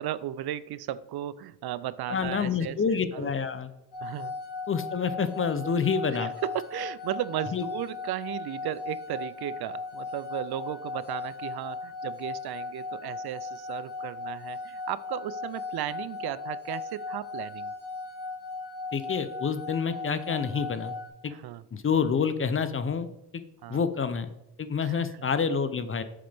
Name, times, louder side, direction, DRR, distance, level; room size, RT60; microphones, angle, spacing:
voice 1, 0.0-3.3 4.0-4.3 6.2-17.7 21.3-21.6 23.6-23.8 24.8-25.1, right 12 dB, 65° right, 18 dB, 0.5 m, -35 dB
voice 2, 2.1-3.7 4.7-6.3 7.5-7.6 18.9-20.9 21.2-21.3 21.7-23.1 23.3-23.4 23.7-24.3 24.6-26.0, left 6 dB, 30° left, 12 dB, 0.6 m, -28 dB
sound 1, 3.9-21.1, left 4 dB, 75° left, 2.6 m, -37 dB
7.6 x 6.7 x 3.5 m, 0.89 s
cardioid pair, 110°, 41 cm